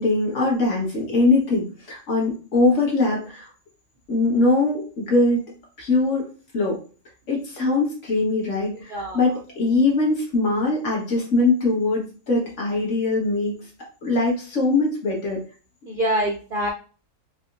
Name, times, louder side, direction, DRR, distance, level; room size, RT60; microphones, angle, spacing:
voice 1, 0.0-3.5 4.1-5.4 5.8-6.8 7.3-13.5 14.0-15.4, left 2 dB, 55° left, -3 dB, 1.5 m, -22 dB
voice 2, 15.9-16.7, right 1 dB, 55° right, -1 dB, 0.6 m, -25 dB
4.2 x 2.8 x 2.4 m, 0.38 s
omnidirectional pair, 1.6 m